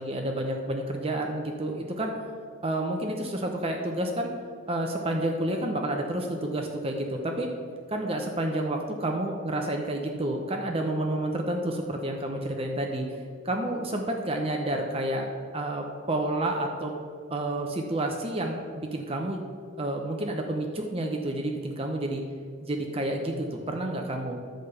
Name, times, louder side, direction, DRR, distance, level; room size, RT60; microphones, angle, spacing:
voice 1, 0.0-2.1 2.6-4.3 4.7-7.5 7.9-13.0 13.4-16.9 17.3-19.4 19.8-22.2 22.6-24.4, right 1 dB, 30° right, 2 dB, 0.7 m, -30 dB
10.5 x 5.1 x 6.7 m, 2.2 s
head